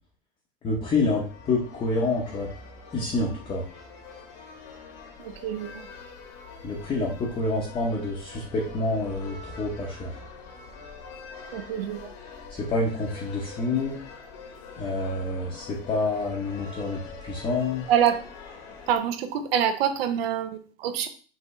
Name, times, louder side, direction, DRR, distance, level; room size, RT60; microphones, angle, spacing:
voice 1, 0.6-2.5 2.9-3.7 6.6-10.1 12.5-14.0 14.8-17.8, left 2 dB, 15° left, -2 dB, 0.8 m, -28 dB
sound 1, 1.0-19.0, left 4 dB, 50° left, 1.2 m, -44 dB
voice 2, 5.2-5.8 11.5-12.1 17.9-18.2 18.9-21.1, right 9 dB, 70° right, 9 dB, 0.8 m, -26 dB
5.5 x 3.1 x 3.1 m, 0.40 s
supercardioid pair, 150°, 31 cm